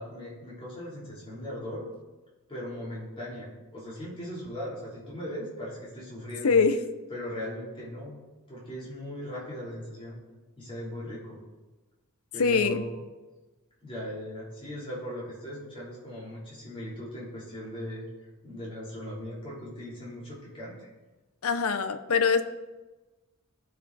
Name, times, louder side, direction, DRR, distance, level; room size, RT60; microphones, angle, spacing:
voice 1, 0.0-1.9 2.5-6.6 7.1-8.1 8.5-10.2 10.6-11.4 12.3-13.0 13.8-18.1 18.4-20.9, equal, 25° left, -7 dB, 3.4 m, -39 dB
voice 2, 6.4-6.8 12.4-12.8 21.4-22.4, left 5 dB, 85° left, 10 dB, 0.7 m, -23 dB
15.0 x 5.1 x 4.0 m, 1.2 s
head